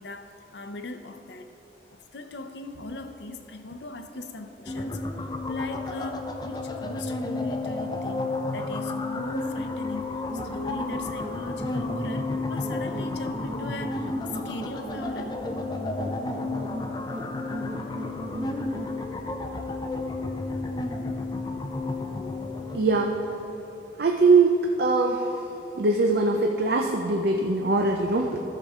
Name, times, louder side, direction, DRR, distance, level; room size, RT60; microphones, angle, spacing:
voice 1, 0.0-1.5 1.9-15.4, left 2 dB, 85° left, 7 dB, 0.7 m, -39 dB
sound 1, 4.7-22.8, left 2 dB, 25° left, 0.5 m, -32 dB
sound 2, 10.3-19.0, right 1 dB, 40° right, 0.8 m, -38 dB
voice 2, 22.7-23.2 24.0-25.5 25.7-28.4, right 3 dB, 65° right, 2 dB, 0.5 m, -22 dB
13.5 x 6.6 x 3.6 m, 3.0 s
head